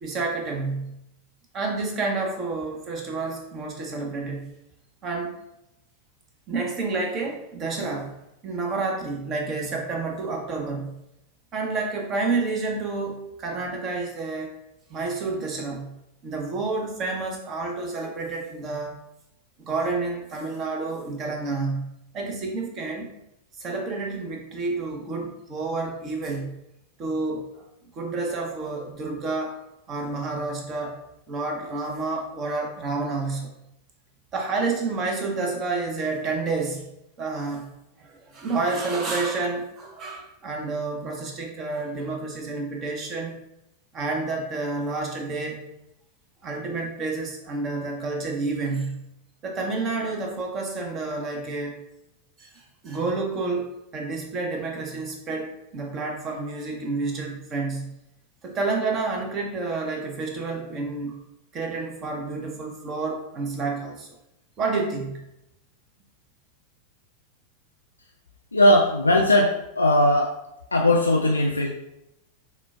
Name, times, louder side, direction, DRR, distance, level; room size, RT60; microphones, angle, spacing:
voice 1, 0.0-1.0 1.5-4.5 5.0-5.3 6.5-8.1 8.4-11.0 11.5-14.6 14.9-15.9 16.2-19.0 19.6-23.1 23.6-26.5 27.0-27.7 27.9-29.6 29.9-31.0 31.3-33.5 34.3-36.9 37.2-37.7 38.0-43.4 43.9-45.7 46.4-49.1 49.4-51.8 52.4-58.0 58.4-61.2 61.5-64.1 64.6-65.2, right 3 dB, 30° right, 1 dB, 0.7 m, -29 dB
voice 2, 68.5-70.3 70.7-71.7, left 1 dB, 80° left, 0 dB, 0.3 m, -19 dB
5.9 x 2.1 x 2.3 m, 0.86 s
figure-of-eight pair, 90°, 0 cm